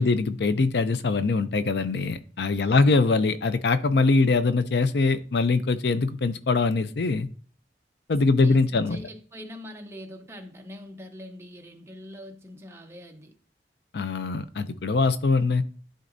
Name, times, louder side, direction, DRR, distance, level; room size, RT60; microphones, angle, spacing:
voice 1, 0.0-7.3 8.1-9.0 13.9-15.6, left 3 dB, 70° left, 0.5 m, -23 dB
voice 2, 2.6-3.0 8.1-13.3, left 1 dB, 15° right, 0.9 m, -43 dB
11.5 x 3.9 x 2.6 m
head